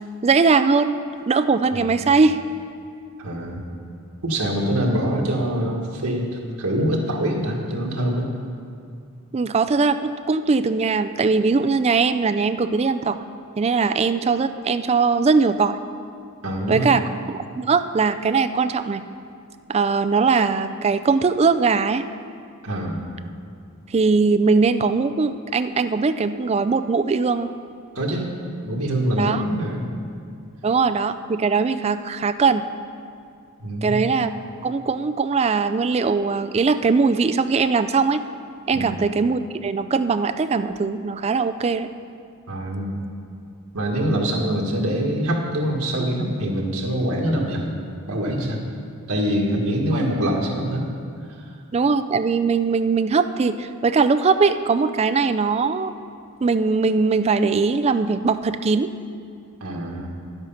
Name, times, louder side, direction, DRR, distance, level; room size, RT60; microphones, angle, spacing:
voice 1, 0.2-1.0 1.3-2.4 9.3-13.2 13.6-15.8 16.7-19.1 19.7-22.0 23.9-27.5 29.2-29.4 30.6-32.7 33.8-34.3 34.6-38.2 38.7-41.9 51.7-55.9 56.4-58.9, right 4 dB, 30° right, 11 dB, 0.3 m, -20 dB
voice 2, 1.7-2.0 3.2-3.6 4.2-8.3 16.4-16.9 22.6-23.0 27.9-28.3 28.6-29.9 33.6-34.0 38.7-39.0 42.5-43.1 43.7-47.6 48.1-48.6 49.1-50.9 51.4-51.5 59.6-60.1, right 1 dB, 90° right, -1 dB, 1.8 m, -24 dB
11.0 x 8.0 x 5.7 m, 2.3 s
head